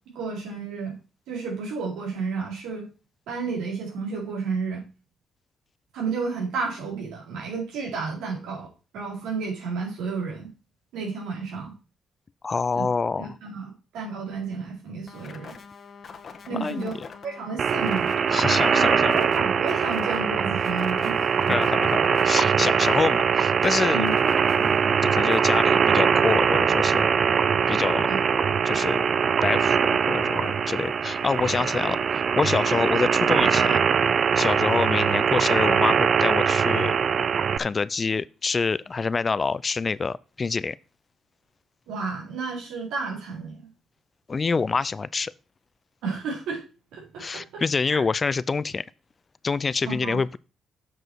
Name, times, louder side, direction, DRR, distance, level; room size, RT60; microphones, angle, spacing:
voice 1, 0.1-1.0 1.3-2.9 3.3-4.8 5.9-8.7 8.9-10.5 10.9-11.7 12.8-12.9 13.2-15.5 16.5-18.2 18.8-21.5 23.9-24.1 28.1-28.2 41.9-43.7 46.0-46.6 46.9-47.6 47.9-48.0 49.9-50.2, right 4 dB, 85° right, 3.7 m, -32 dB
voice 2, 12.4-13.3 16.5-16.9 18.3-19.1 21.5-24.1 24.6-27.1 27.7-28.1 28.6-29.1 29.4-33.8 34.4-36.9 37.6-40.8 44.3-45.3 47.2-48.8 49.4-50.4, left 4 dB, 35° left, 0.4 m, -26 dB
sound 1, 15.1-26.0, left 5 dB, 50° left, 1.3 m, -45 dB
sound 2, 17.6-37.6, right 6 dB, 50° right, 0.5 m, -22 dB
7.9 x 6.1 x 4.6 m
cardioid pair, 90°, 0 cm